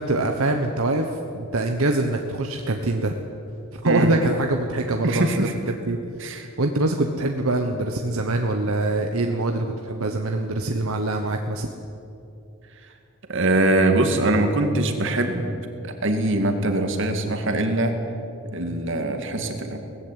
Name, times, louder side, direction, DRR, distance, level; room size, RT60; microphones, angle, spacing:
voice 1, 0.0-3.2 3.7-6.0 6.6-11.7, right 2 dB, 85° right, 4 dB, 1.2 m, -24 dB
voice 2, 5.0-5.5 6.2-6.5 13.3-15.5 15.8-17.9 18.5-19.8, right 1 dB, 60° right, 5 dB, 2.2 m, -22 dB
18.5 x 15.0 x 9.3 m, 2.7 s
head